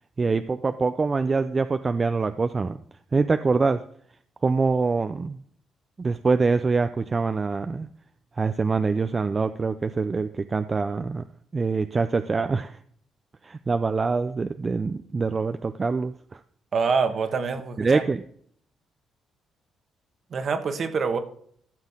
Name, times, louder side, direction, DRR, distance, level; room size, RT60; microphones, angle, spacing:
voice 1, 0.2-2.8 3.1-3.8 4.4-5.4 6.0-7.9 8.4-11.3 11.5-12.8 13.4-16.4 17.8-18.2, right 4 dB, 30° right, 10 dB, 0.4 m, -24 dB
voice 2, 16.7-18.0 20.3-21.2, right 5 dB, 50° right, 8 dB, 1.3 m, -25 dB
13.0 x 6.3 x 3.6 m, 0.63 s
cardioid pair, 90°, 0 cm